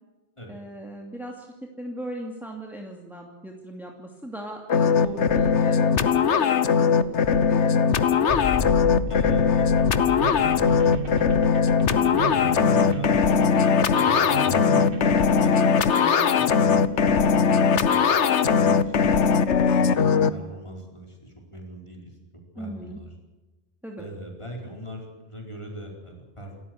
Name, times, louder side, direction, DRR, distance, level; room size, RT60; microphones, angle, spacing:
voice 1, 0.5-8.0 11.9-12.3 15.3-15.5 22.6-23.0 23.8-24.0, right 1 dB, ahead, 1 dB, 2.6 m, -39 dB
sound 1, 4.7-20.3, left 6 dB, 85° left, 1.3 m, -20 dB
sound 2, 8.3-13.5, left 5 dB, 45° left, 1.0 m, -34 dB
voice 2, 8.3-11.5 12.3-14.7 15.3-18.0 18.4-22.2 22.5-23.1 24.0-26.6, right 1 dB, 25° left, 0 dB, 4.8 m, -41 dB
sound 3, 10.2-15.7, right 4 dB, 50° right, 1.9 m, -34 dB
28.5 x 14.0 x 7.9 m, 1.2 s
omnidirectional pair, 1.2 m